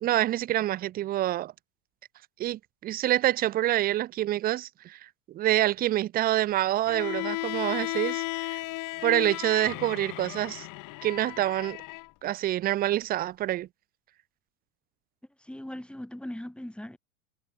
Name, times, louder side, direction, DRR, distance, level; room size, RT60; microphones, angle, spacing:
voice 1, 0.0-1.5 2.4-8.6 9.0-10.7 11.0-11.8 12.2-13.7, right 14 dB, 20° right, 0.4 m, -27 dB
Bowed string instrument, 6.9-12.1, left 22 dB, 45° left, 1.7 m, -35 dB
voice 2, 15.4-17.0, left 1 dB, ahead, 5.3 m, -39 dB
hypercardioid pair, 110°, 43 cm